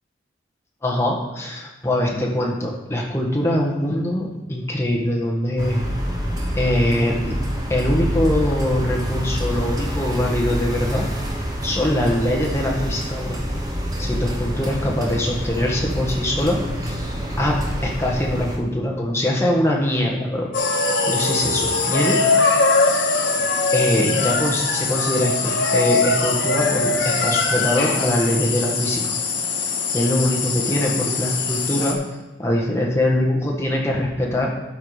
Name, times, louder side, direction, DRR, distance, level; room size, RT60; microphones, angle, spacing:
voice 1, 0.8-5.8 6.5-7.3 7.7-11.1 11.6-13.4 14.0-17.0 17.4-17.5 17.8-20.5 21.0-22.2 23.7-29.2 29.9-32.0 32.4-34.5, left 1 dB, 15° left, -2 dB, 1.5 m, -22 dB
sound 1, 5.6-18.6, equal, 20° right, 1.2 m, -26 dB
sound 2, 20.5-31.9, left 4 dB, 70° left, 1.3 m, -21 dB
12.5 x 4.8 x 4.9 m, 1.1 s
head